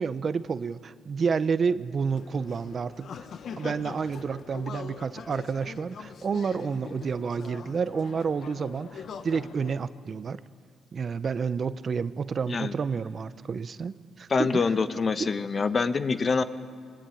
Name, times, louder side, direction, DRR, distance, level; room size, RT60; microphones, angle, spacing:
voice 1, 0.0-3.1 3.6-10.4 10.9-14.6, right 5 dB, 45° right, 14 dB, 0.8 m, -30 dB
sound 1, 2.1-9.7, left 6 dB, 60° left, 1.2 m, -43 dB
voice 2, 14.3-16.4, left 4 dB, 35° left, 11 dB, 1.1 m, -25 dB
25.0 x 22.0 x 9.2 m, 2.1 s
cardioid pair, 90°, 0 cm